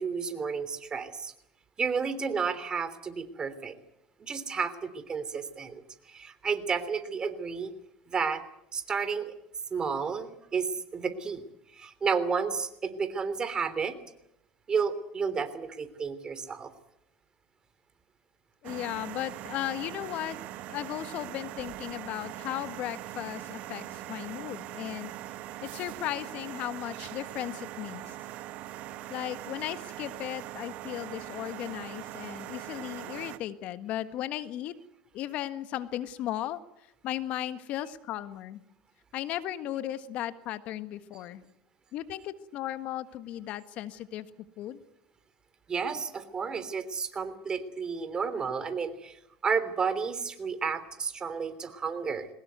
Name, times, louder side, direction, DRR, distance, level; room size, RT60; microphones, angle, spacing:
voice 1, 0.0-1.3 1.8-3.7 4.2-7.7 8.1-8.4 8.7-9.3 9.7-11.4 11.7-13.9 14.7-16.7 45.7-49.2 49.4-52.3, right 5 dB, 30° right, 12 dB, 3.2 m, -31 dB
voice 2, 18.6-20.4 20.7-25.1 25.6-28.2 29.1-34.7 35.1-36.6 37.0-38.6 39.1-41.4 41.9-44.3 44.6-44.8, left 13 dB, 60° left, 12 dB, 1.6 m, -36 dB
sound 1, 18.6-33.4, right 13 dB, 60° right, 1.7 m, -41 dB
22.0 x 19.5 x 9.4 m, 0.79 s
hypercardioid pair, 85°, 3 cm